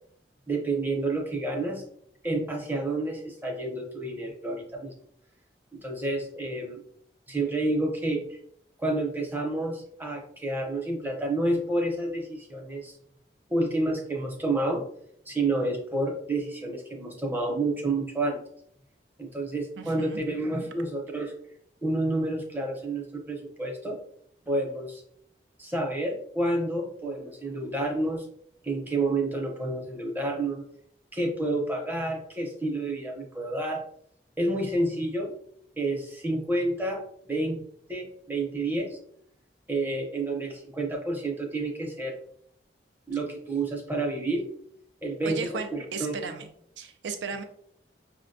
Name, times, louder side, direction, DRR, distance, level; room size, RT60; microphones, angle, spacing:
voice 1, 0.5-1.8 2.2-4.9 5.7-6.8 7.3-8.4 8.8-12.9 13.5-14.9 15.3-18.4 19.2-21.3 21.8-24.0 24.5-25.0 25.6-28.3 28.6-30.6 31.1-33.8 34.4-35.3 35.8-37.0 37.3-37.6 37.9-39.0 39.7-42.2 43.1-44.5 45.0-45.4 45.7-46.2, right 2 dB, 10° right, 1 dB, 0.6 m, -29 dB
voice 2, 19.8-20.2 45.2-46.5 46.8-47.4, right 5 dB, 85° right, 7 dB, 0.4 m, -35 dB
5.7 x 2.2 x 2.5 m, 0.68 s
head